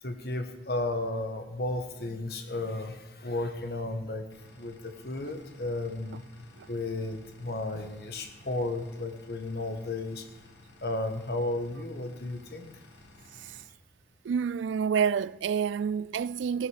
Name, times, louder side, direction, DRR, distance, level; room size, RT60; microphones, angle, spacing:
voice 1, 0.0-4.3 4.5-6.2 6.7-10.3 10.8-12.8, left 2 dB, 60° left, 1.3 m, -33 dB
sound 1, 4.3-13.7, left 2 dB, 80° left, 1.4 m, -54 dB
voice 2, 13.3-13.6 14.2-16.7, right 7 dB, 90° right, 0.3 m, -29 dB
16.5 x 9.9 x 5.0 m
head